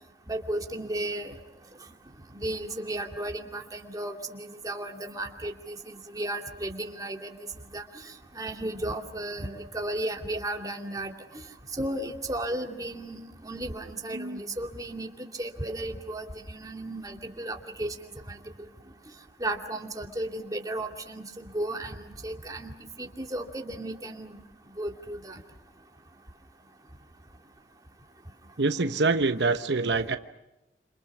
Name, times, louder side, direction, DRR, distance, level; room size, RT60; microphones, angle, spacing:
voice 1, 0.3-1.4 2.3-7.3 7.7-7.8 8.3-11.1 11.8-15.1 15.4-17.9 18.3-18.4 19.4-22.7 23.0-24.4 24.8-25.4, right 1 dB, 20° right, 3 dB, 2.5 m, -34 dB
voice 2, 28.6-30.2, right 3 dB, 75° right, 9 dB, 1.0 m, -25 dB
28.0 x 28.0 x 6.1 m, 0.93 s
head